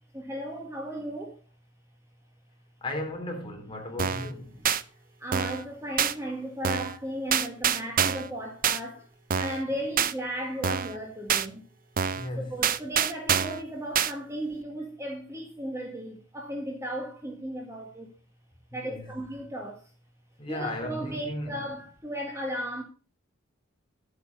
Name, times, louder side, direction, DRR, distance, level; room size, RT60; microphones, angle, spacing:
voice 1, 0.1-1.4 4.6-4.7 5.2-9.1 9.4-11.6 12.3-18.1 18.7-19.8 20.5-22.8, equal, 15° right, 1.7 m, -35 dB
voice 2, 2.8-4.6 12.1-12.5 18.7-19.2 20.4-21.6, left 1 dB, 25° left, 3.5 m, -36 dB
sound 1, 4.0-4.3 4.6-4.8 5.3-5.6 6.0-6.1 6.6-7.0 7.3-8.3 8.6-8.8 9.3-9.6 10.0-10.1 10.6-11.0 11.3-11.5 12.0-12.3 12.6-13.6 13.9-14.1, right 8 dB, 45° right, 0.6 m, -26 dB
11.0 x 8.3 x 5.3 m
head